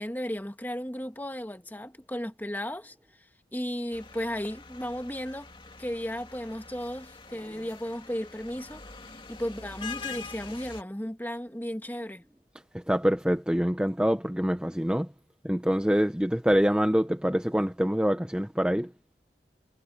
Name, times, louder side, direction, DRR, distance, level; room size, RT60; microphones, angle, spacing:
voice 1, 0.0-2.9 3.5-5.5 5.8-8.8 9.3-12.2, equal, 10° left, 1.6 m, -34 dB
sound 1, 3.9-10.8, left 5 dB, 30° left, 2.5 m, -44 dB
voice 2, 12.9-15.1 15.4-18.9, equal, 5° right, 0.7 m, -25 dB
head